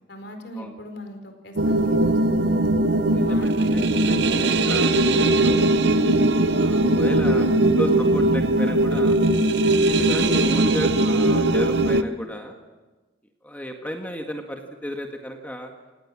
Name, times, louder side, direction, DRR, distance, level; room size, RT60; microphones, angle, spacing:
voice 1, 0.1-2.7 3.3-5.8 7.2-7.8 10.0-10.3, equal, 55° left, 6 dB, 4.4 m, -39 dB
sound 1, 1.6-12.0, right 1 dB, 60° right, 1.0 m, -20 dB
voice 2, 3.1-4.9 5.2-5.7 6.6-9.2 9.8-12.5 13.4-15.7, equal, 10° left, 3 dB, 1.7 m, -33 dB
28.0 x 18.0 x 7.5 m, 1.2 s
head